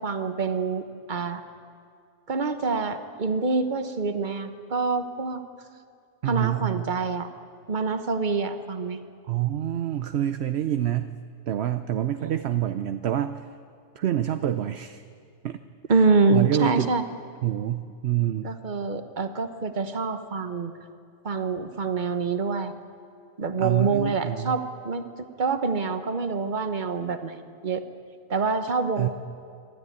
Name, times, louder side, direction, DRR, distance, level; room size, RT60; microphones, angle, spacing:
voice 1, 0.0-1.4 2.3-5.4 6.3-7.3 7.7-9.0 12.2-12.3 15.9-17.0 18.4-20.7 21.2-22.7 23.4-25.1 25.4-27.8 28.3-29.1, right 4 dB, 40° right, 9 dB, 1.2 m, -26 dB
voice 2, 6.2-6.9 9.3-11.1 11.5-13.4 13.9-15.0 15.4-15.6 16.3-16.9 17.4-18.5 23.6-24.6 29.0-29.1, right 12 dB, 60° right, 10 dB, 0.8 m, -26 dB
26.0 x 12.5 x 9.5 m, 2.3 s
omnidirectional pair, 1.4 m